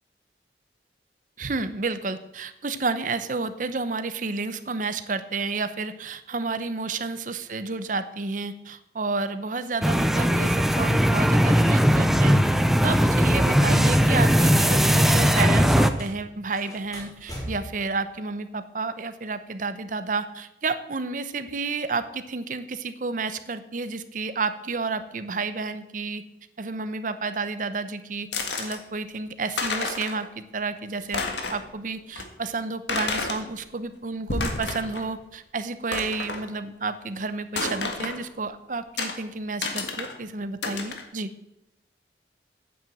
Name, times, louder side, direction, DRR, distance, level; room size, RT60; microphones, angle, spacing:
voice 1, 1.4-26.2 26.6-41.3, right 3 dB, 50° right, 12 dB, 0.8 m, -31 dB
sound 1, 9.8-15.9, equal, ahead, 0.5 m, -19 dB
sound 2, 13.3-16.2 16.5-17.8, equal, 20° left, 3.7 m, -39 dB
sound 3, 28.3-28.8 29.3-29.4 29.5-30.3 30.6-30.7 31.0-31.7 32.2-32.3 32.9-33.4 34.1-35.1 35.3-35.4 35.9-36.4 37.6-38.2 39.0-39.2 39.6-40.1 40.6-41.0, left 4 dB, 85° left, 1.7 m, -30 dB
9.1 x 7.6 x 7.8 m, 0.86 s
head